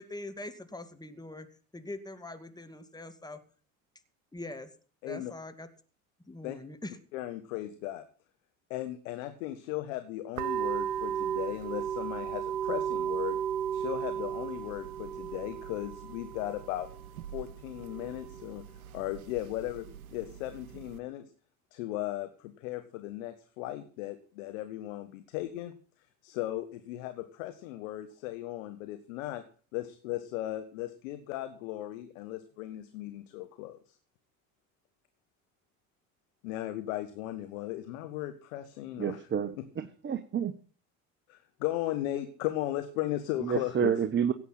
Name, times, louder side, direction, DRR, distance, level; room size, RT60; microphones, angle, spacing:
voice 1, 0.0-1.5 1.7-3.4 4.3-4.7 5.1-5.7 6.3-7.0, left 2 dB, 10° left, 9 dB, 2.3 m, -42 dB
voice 2, 7.1-8.0 8.7-13.4 13.7-16.9 17.3-18.6 18.9-19.8 20.1-21.2 21.7-25.7 26.2-29.4 29.7-34.0 36.4-39.3 39.6-39.7 41.3-44.0, left 14 dB, 70° left, 9 dB, 1.6 m, -36 dB
sound 1, 10.4-21.0, right 9 dB, 85° right, 0.9 m, -36 dB
voice 3, 39.0-40.5 43.4-44.3, right 7 dB, 25° right, 10 dB, 1.2 m, -29 dB
17.0 x 8.4 x 5.7 m, 0.42 s
hypercardioid pair, 70°, 42 cm